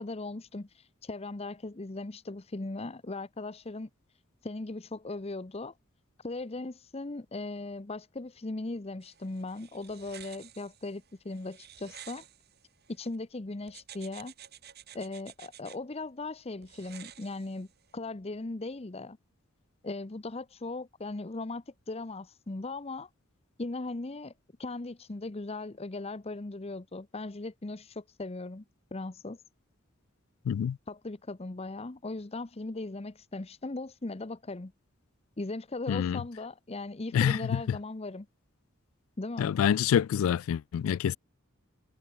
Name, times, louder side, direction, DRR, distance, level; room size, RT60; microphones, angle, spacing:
voice 1, 0.0-3.9 4.4-5.7 6.2-12.2 12.9-14.3 14.9-17.7 17.9-19.2 19.8-23.1 23.6-24.3 24.6-28.6 28.9-29.4 30.9-34.7 35.4-38.3 39.2-39.6, left 2 dB, 30° left, 0.7 m, -38 dB
sound 1, 9.0-13.2 13.7-15.8 16.6-17.9, right 10 dB, 50° right, 2.2 m, -52 dB
voice 2, 30.5-30.8 35.9-36.2 37.1-37.6 39.4-41.2, left 8 dB, 90° left, 0.3 m, -26 dB
head